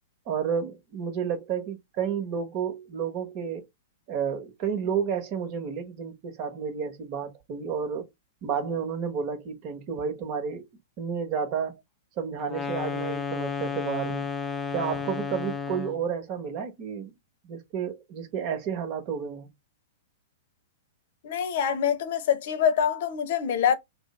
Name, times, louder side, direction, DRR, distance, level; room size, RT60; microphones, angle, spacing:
voice 1, 0.3-3.7 4.1-8.1 8.4-10.7 11.0-11.8 12.2-14.3 14.7-17.1 17.4-19.5, right 7 dB, 45° right, 1.1 m, -31 dB
sound 1, 12.4-16.1, left 5 dB, 15° left, 0.5 m, -32 dB
voice 2, 21.2-23.8, left 8 dB, 60° left, 0.8 m, -25 dB
3.2 x 2.1 x 4.2 m
hypercardioid pair, 115°, 0 cm